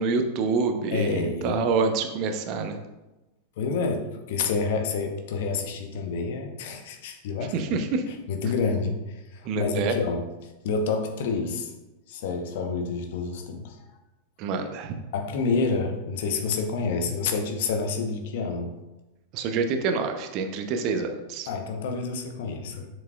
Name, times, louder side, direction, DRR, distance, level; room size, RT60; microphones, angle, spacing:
voice 1, 0.0-2.8 7.5-8.0 9.4-10.0 14.4-15.0 19.3-21.5, right 4 dB, 40° right, 7 dB, 0.7 m, -27 dB
voice 2, 0.9-1.7 3.6-7.8 8.1-11.7 12.1-13.8 15.1-18.7 21.5-22.9, left 4 dB, 55° left, 4 dB, 0.9 m, -28 dB
7.1 x 6.2 x 2.4 m, 1.0 s
figure-of-eight pair, 90°, 0 cm